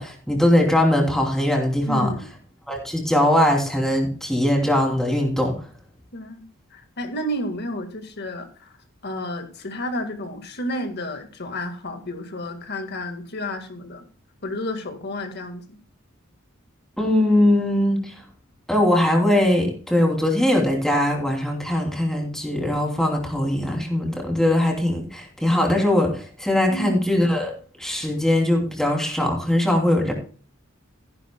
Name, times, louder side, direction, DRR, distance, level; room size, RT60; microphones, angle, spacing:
voice 1, 0.0-2.1 2.7-5.5 17.0-18.2 18.7-27.5 27.8-30.1, left 1 dB, ahead, 0 dB, 3.0 m, -21 dB
voice 2, 1.8-2.3 6.1-8.7 9.0-14.0 14.4-15.8 26.7-27.0, left 1 dB, 55° left, 7 dB, 1.8 m, -31 dB
15.0 x 10.5 x 2.3 m, 0.41 s
head